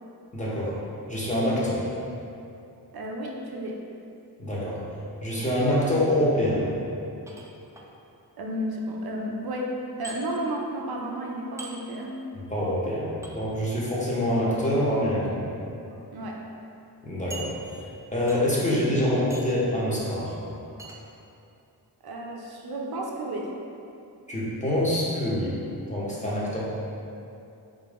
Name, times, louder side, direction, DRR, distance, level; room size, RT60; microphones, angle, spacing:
voice 1, 0.3-0.8 1.1-1.9 4.4-4.8 5.2-6.6 12.5-15.4 17.0-17.5 18.1-20.3 24.3-25.6 25.9-26.6, left 1 dB, 20° left, -7 dB, 0.8 m, -25 dB
voice 2, 2.9-3.8 8.4-9.7 10.0-12.2 16.1-16.4 22.0-23.5, right 1 dB, 65° right, 0 dB, 0.5 m, -32 dB
sound 1, 7.3-7.9 10.0-10.2 11.6-11.8 13.2-13.3 14.7-15.0 15.7-15.8 16.2-16.3 17.3-17.9 18.3-18.6 19.3-19.6 20.8-21.0, right 3 dB, 10° right, 0.4 m, -42 dB
3.6 x 2.9 x 3.4 m, 2.7 s
wide cardioid pair, 115°, 41 cm